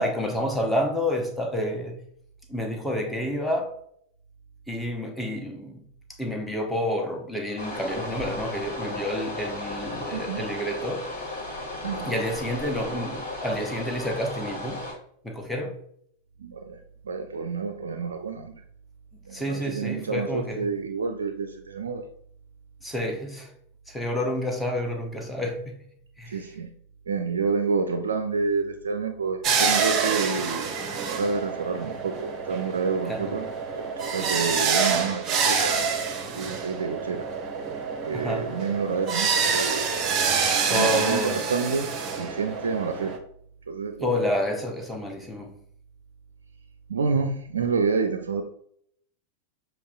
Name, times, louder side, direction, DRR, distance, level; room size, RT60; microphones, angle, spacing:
voice 1, 0.0-2.0 2.5-3.7 4.7-5.8 6.1-11.0 12.0-14.8 15.2-15.8 19.3-20.7 22.8-23.5 23.9-25.8 26.2-26.4 33.1-33.3 38.1-38.5 40.7-41.4 44.0-45.6, left 1 dB, 5° left, 2 dB, 0.9 m, -29 dB
sound 1, 7.6-14.9, left 1 dB, 55° left, 1.8 m, -35 dB
voice 2, 10.1-10.5 11.8-12.2 16.4-18.5 19.3-22.1 26.2-26.7 27.1-33.5 33.7-35.9 36.3-37.3 38.0-39.8 40.6-41.9 42.2-43.2 43.7-44.3 46.9-48.4, right 4 dB, 70° right, 7 dB, 0.4 m, -29 dB
sound 2, 29.4-43.2, right 5 dB, 30° right, 0.7 m, -27 dB
6.9 x 3.0 x 2.4 m, 0.67 s
figure-of-eight pair, 90°, 0 cm